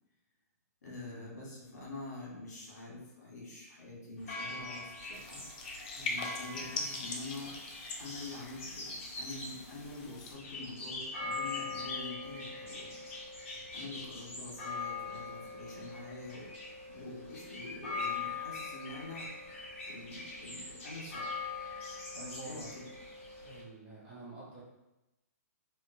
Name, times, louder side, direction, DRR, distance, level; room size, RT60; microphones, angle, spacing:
voice 1, 0.8-5.4 6.1-7.5 8.0-16.5 16.9-19.3 19.9-21.2 22.1-22.9, left 2 dB, 85° left, -4 dB, 1.2 m, -46 dB
sound 1, 4.2-23.6, left 3 dB, 50° left, 1.2 m, -42 dB
sound 2, 5.1-10.3, left 3 dB, 30° left, 0.3 m, -42 dB
voice 2, 21.9-22.7 23.4-24.6, right 3 dB, 10° right, -8 dB, 0.6 m, -50 dB
2.9 x 2.1 x 2.6 m, 0.96 s
hypercardioid pair, 170°, 9 cm